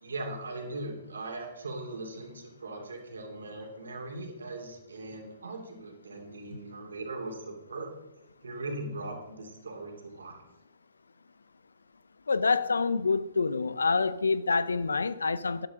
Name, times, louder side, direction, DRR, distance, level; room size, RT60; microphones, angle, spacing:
voice 1, 0.0-7.9 8.4-10.4, right 2 dB, 80° right, 2.7 m, -39 dB
voice 2, 12.3-15.7, left 4 dB, 85° left, 0.6 m, -27 dB
12.0 x 11.0 x 3.7 m
hypercardioid pair, 125°, 0 cm